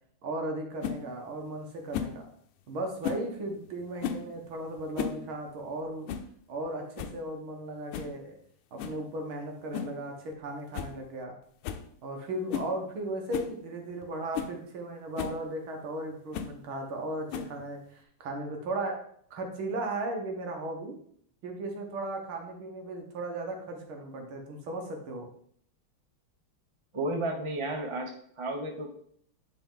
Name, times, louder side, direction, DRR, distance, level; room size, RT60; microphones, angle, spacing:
voice 1, 0.2-2.3 2.7-6.1 6.5-8.4 8.7-11.4 12.0-19.0 19.3-21.0 21.4-25.3, right 2 dB, 70° right, 3 dB, 2.1 m, -36 dB
sound 1, 0.8-1.0 1.9-2.2 3.0-3.3 4.0-4.3 4.8-5.2 5.5-5.6 6.1-6.3 6.7-6.8 7.0-7.2 7.9-8.1 8.8-9.0 9.7-10.0 10.3-10.4 10.7-10.9 11.2-11.3 11.6-11.9 12.5-12.7 13.3-13.5 14.0-14.1 14.3-14.5 15.2-15.4 16.3-16.6 17.3-17.7, left 8 dB, 90° left, 1.6 m, -35 dB
voice 2, 26.9-28.9, right 2 dB, 30° right, 3 dB, 0.5 m, -33 dB
9.8 x 4.5 x 3.8 m, 0.64 s
omnidirectional pair, 2.4 m